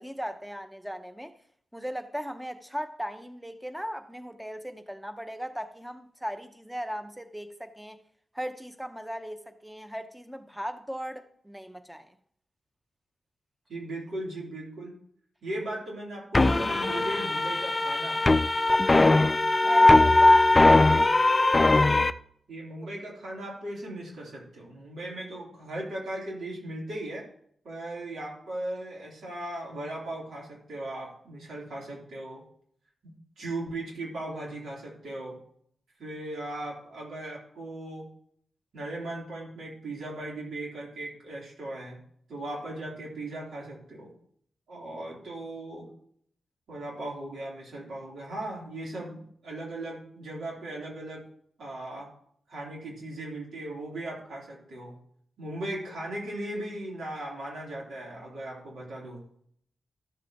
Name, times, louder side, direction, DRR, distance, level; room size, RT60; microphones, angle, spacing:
voice 1, 0.0-1.4 1.7-8.0 8.3-12.2 19.6-20.6, equal, 5° right, 0.8 m, -37 dB
voice 2, 13.7-14.9 15.4-18.2 22.5-27.3 27.6-32.4 33.0-35.4 36.0-38.1 38.7-42.0 42.3-44.1 44.7-45.9 46.7-51.2 51.6-52.1 52.5-55.0 55.4-59.2, right 1 dB, 80° right, 3.6 m, -38 dB
sound 1, 16.3-22.1, left 2 dB, 25° left, 0.4 m, -20 dB
13.5 x 7.4 x 3.0 m
wide cardioid pair, 95°, 0 cm